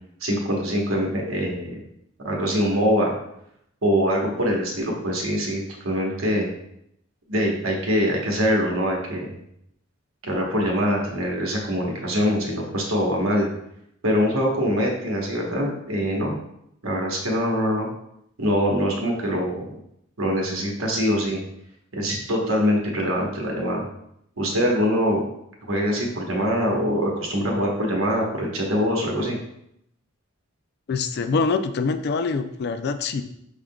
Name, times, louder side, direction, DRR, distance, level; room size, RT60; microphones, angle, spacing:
voice 1, 0.2-1.8 2.2-3.1 3.8-6.5 7.3-9.4 10.2-13.5 14.0-16.4 16.8-17.9 18.4-19.6 20.2-21.4 21.9-23.8 24.4-25.2 25.7-29.4, equal, 75° right, -1 dB, 1.2 m, -23 dB
voice 2, 30.9-33.2, left 4 dB, 55° left, 9 dB, 0.4 m, -24 dB
6.3 x 3.6 x 2.3 m, 0.76 s
head